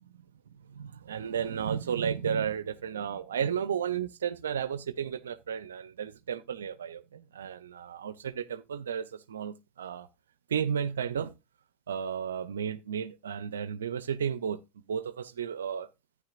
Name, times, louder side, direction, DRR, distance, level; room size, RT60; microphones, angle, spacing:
voice 1, 0.7-10.1 10.5-11.3 11.9-14.6 14.9-15.9, right 8 dB, 85° right, 0.4 m, -33 dB
11.5 x 9.4 x 2.4 m
hypercardioid pair, 90°, 0 cm